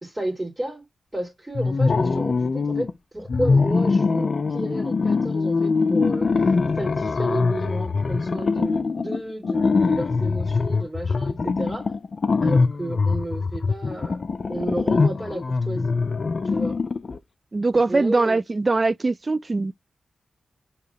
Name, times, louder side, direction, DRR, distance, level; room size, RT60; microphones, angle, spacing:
voice 1, 0.0-0.9 1.1-11.9 12.4-14.2 14.5-15.9 16.4-16.8 17.8-18.4, right 1 dB, 20° right, 2.2 m, -32 dB
sound 1, 1.5-2.9 3.3-17.2, left 4 dB, 55° left, 0.5 m, -23 dB
voice 2, 17.5-19.7, right 3 dB, 40° right, 0.3 m, -22 dB
4.7 x 3.0 x 2.8 m
cardioid pair, 50°, 0 cm